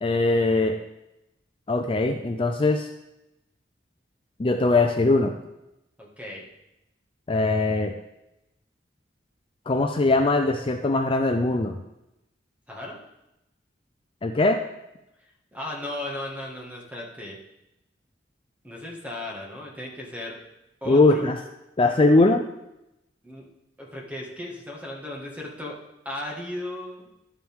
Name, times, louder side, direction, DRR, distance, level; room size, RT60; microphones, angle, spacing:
voice 1, 0.0-0.8 1.7-2.9 4.4-5.3 7.3-8.0 9.7-11.8 14.2-14.6 20.9-21.4 21.8-22.4, left 2 dB, 30° left, 5 dB, 0.5 m, -21 dB
voice 2, 6.0-6.5 12.7-13.0 15.5-17.4 18.6-20.4 20.8-21.3 23.2-23.5 23.8-25.8 26.1-27.1, left 1 dB, 10° right, -2 dB, 1.8 m, -36 dB
11.5 x 7.4 x 3.6 m, 0.89 s
head